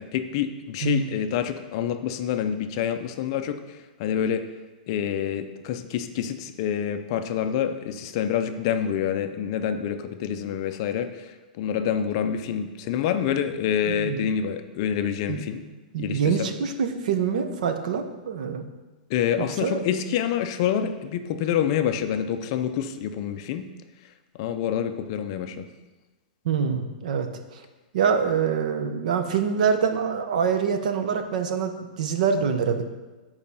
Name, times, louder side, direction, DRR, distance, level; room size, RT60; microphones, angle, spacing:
voice 1, 0.0-3.6 4.0-4.4 4.9-15.6 16.0-16.5 19.1-23.6 24.4-25.7, left 9 dB, 35° left, 8 dB, 0.4 m, -27 dB
voice 2, 0.8-1.1 13.9-14.3 15.3-15.4 15.9-18.7 19.4-19.8 26.4-27.6 27.9-32.8, right 6 dB, 55° right, 8 dB, 0.8 m, -25 dB
7.4 x 4.8 x 5.6 m, 1.2 s
supercardioid pair, 175°, 5 cm